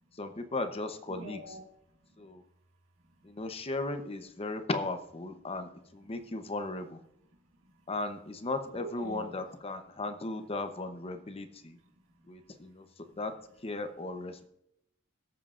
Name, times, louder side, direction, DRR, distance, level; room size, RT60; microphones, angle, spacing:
voice 1, 0.2-1.4 2.2-2.4 3.2-7.0 7.9-11.8 12.3-12.9 13.2-13.3 13.6-14.5, left 2 dB, 30° left, 8 dB, 0.8 m, -36 dB
voice 2, 1.1-2.3 3.0-3.3 6.0-6.1 7.4-7.9 8.6-9.4 11.6-12.6 13.1-13.2, right 2 dB, 70° right, 2 dB, 1.9 m, -49 dB
21.5 x 7.4 x 2.5 m, 0.79 s
head